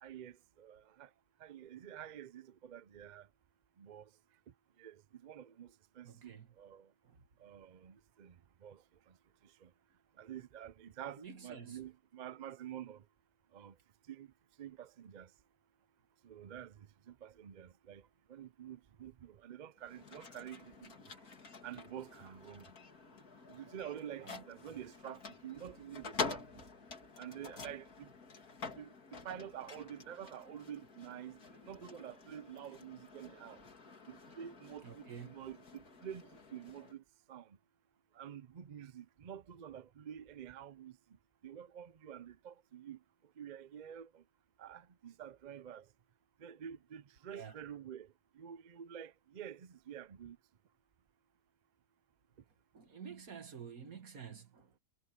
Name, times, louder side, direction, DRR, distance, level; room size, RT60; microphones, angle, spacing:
voice 1, 0.0-1.1 1.4-3.3 3.8-4.1 4.8-6.9 7.4-9.2 9.4-9.7 10.2-13.0 13.5-13.8 14.1-14.3 14.6-15.3 16.2-21.2 21.6-22.7 23.5-26.6 27.2-28.1 28.7-33.6 34.1-37.6 38.1-41.0 41.4-43.0 43.4-44.2 44.6-45.9 46.4-50.4, right 9 dB, 50° right, 0.5 m, -49 dB
voice 2, 6.0-6.5 7.0-7.2 11.2-11.8 24.2-24.4 34.8-35.3 47.3-47.5 52.7-54.8, right 7 dB, 70° right, 2.4 m, -49 dB
sound 1, 19.8-36.9, left 4 dB, 80° left, 2.9 m, -48 dB
omnidirectional pair, 1.5 m